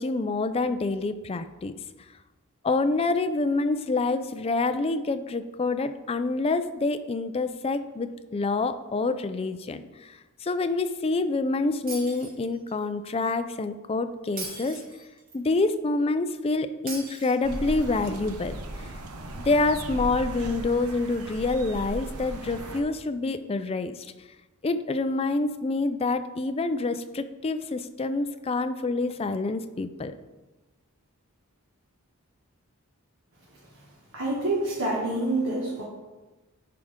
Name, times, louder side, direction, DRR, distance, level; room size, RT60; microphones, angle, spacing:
voice 1, 0.0-1.7 2.6-14.8 15.3-18.9 19.4-24.1 24.6-30.2, left 3 dB, 25° left, 10 dB, 0.4 m, -27 dB
Shatter, 11.9-12.8 14.4-15.4 16.9-17.9, right 3 dB, 40° right, 2.2 m, -40 dB
sound 1, 17.4-22.8, right 1 dB, 85° right, 0.8 m, -37 dB
voice 2, 34.1-35.8, right 2 dB, 60° right, -6 dB, 1.7 m, -27 dB
10.5 x 4.9 x 3.7 m, 1.2 s
head